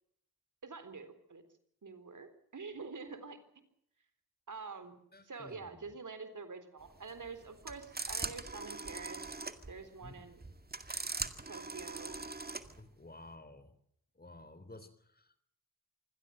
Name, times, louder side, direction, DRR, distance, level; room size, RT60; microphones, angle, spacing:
voice 1, 0.6-1.4 1.8-3.4 4.5-5.0 5.2-9.3 9.7-10.4 11.5-12.2, right 4 dB, 55° right, 11 dB, 4.0 m, -47 dB
voice 2, 5.1-5.9 10.0-10.3 12.8-13.7 14.2-15.4, left 2 dB, 25° left, 13 dB, 3.6 m, -53 dB
sound 1, 6.9-12.8, right 3 dB, 25° right, 2.2 m, -41 dB
25.5 x 16.0 x 7.8 m, 0.72 s
cardioid pair, 50°, 38 cm